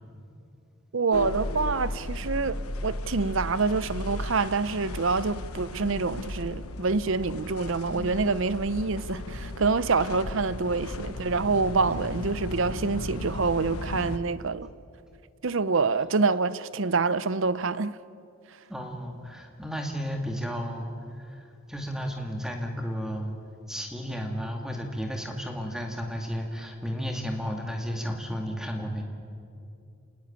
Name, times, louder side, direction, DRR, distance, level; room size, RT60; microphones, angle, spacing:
voice 1, 0.9-2.6 2.8-14.7 15.4-17.9, right 4 dB, 60° right, 0.7 m, -26 dB
sound 1, 1.1-14.2, left 2 dB, 85° left, 1.2 m, -35 dB
voice 2, 18.7-23.3 23.7-29.0, equal, ahead, 2.4 m, -33 dB
28.0 x 19.0 x 8.9 m
head